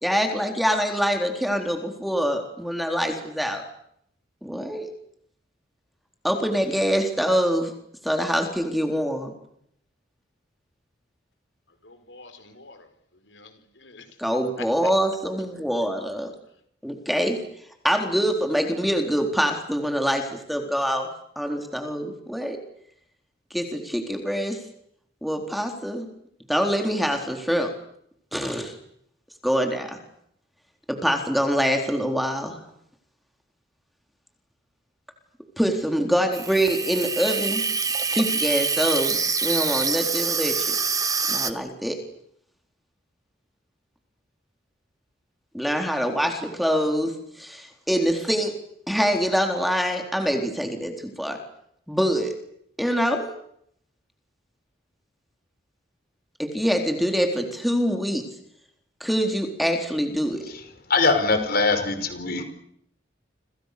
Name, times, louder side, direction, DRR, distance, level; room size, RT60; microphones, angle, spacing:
voice 1, 0.0-3.6 4.4-4.9 6.2-7.7 8.0-9.3 14.2-16.3 16.8-17.4 17.8-21.1 21.4-22.6 23.5-24.6 25.2-26.1 26.5-27.7 28.3-28.7 29.4-30.0 30.9-32.6 35.6-37.6 38.1-40.8 41.3-42.0 45.5-47.1 47.4-48.5 48.9-51.4 51.9-52.3 52.8-53.3 56.4-58.2 59.0-60.4, equal, ahead, 4 dB, 4.0 m, -24 dB
voice 2, 11.8-14.2 14.6-14.9, left 4 dB, 75° left, 9 dB, 4.9 m, -46 dB
Water tap faucet / Sink (filling or washing), 36.3-41.5, right 5 dB, 20° right, 1.6 m, -25 dB
voice 3, 60.9-62.4, left 3 dB, 55° left, 8 dB, 5.0 m, -22 dB
29.5 x 27.0 x 6.9 m, 0.71 s
head